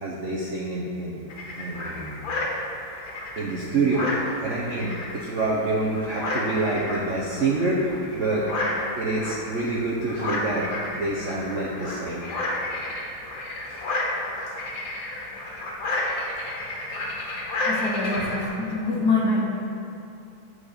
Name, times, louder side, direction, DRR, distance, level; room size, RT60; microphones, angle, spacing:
voice 1, 0.0-1.2 1.5-2.2 3.4-8.5 9.0-12.2 13.7-13.8, right 2 dB, 55° right, -5 dB, 0.9 m, -27 dB
sound 1, 1.3-18.5, left 2 dB, 70° left, 2.0 m, -31 dB
voice 2, 17.6-19.5, left 3 dB, 55° left, -3 dB, 1.8 m, -25 dB
8.6 x 4.7 x 6.7 m, 2.7 s
omnidirectional pair, 2.2 m